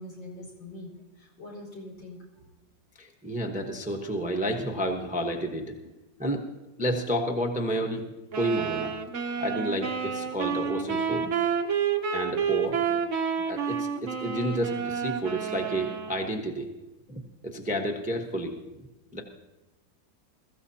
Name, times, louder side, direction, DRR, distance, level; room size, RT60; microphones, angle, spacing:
voice 1, 0.0-2.4, left 1 dB, 85° left, -6 dB, 5.4 m, -43 dB
voice 2, 3.0-5.7 6.2-6.4 6.8-8.0 8.3-8.9 9.4-11.3 12.1-13.0 13.5-16.7 17.1-18.6 19.1-19.2, equal, 5° right, 2 dB, 0.8 m, -30 dB
sound 1, 8.3-16.3, right 7 dB, 50° right, 1.0 m, -29 dB
21.5 x 14.5 x 2.8 m, 1.0 s
omnidirectional pair, 2.0 m